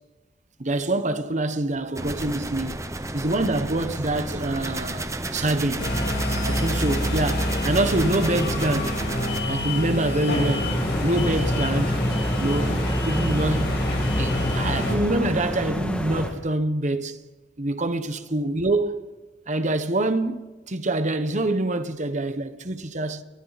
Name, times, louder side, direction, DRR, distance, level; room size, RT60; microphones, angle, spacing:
voice 1, 0.6-2.8 3.1-5.9 6.4-9.0 9.5-12.0 12.4-13.8 14.2-17.2 17.6-19.0 19.5-23.2, right 2 dB, 40° right, 1.2 m, -26 dB
sound 1, 2.0-9.4, right 2 dB, 15° right, 0.9 m, -32 dB
sound 2, 5.8-15.0, left 1 dB, 65° left, 6.8 m, -26 dB
sound 3, 10.6-16.3, equal, 5° left, 2.0 m, -29 dB
29.5 x 21.5 x 4.2 m
head